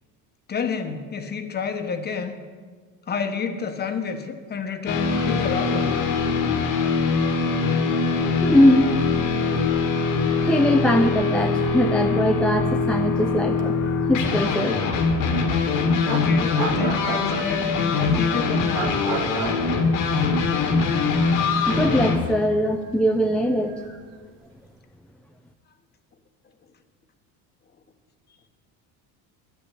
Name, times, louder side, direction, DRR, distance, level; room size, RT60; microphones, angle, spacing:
voice 1, 0.5-2.3 3.1-5.9 16.1-18.8, left 5 dB, 30° left, 7 dB, 1.2 m, -29 dB
sound 1, 4.9-22.2, left 4 dB, 75° left, 2.2 m, -23 dB
voice 2, 8.4-8.9 9.2-9.6 10.4-14.8 21.6-24.0, left 1 dB, 5° left, 4 dB, 0.5 m, -21 dB
sound 2, 10.9-11.0 11.2-11.4 13.6-13.7 15.4-15.5 16.1-17.8 18.7-20.7 21.0-21.1 21.9-24.2, right 6 dB, 85° right, 1.8 m, -33 dB
11.5 x 8.2 x 8.6 m, 1.5 s
cardioid pair, 135°, 35 cm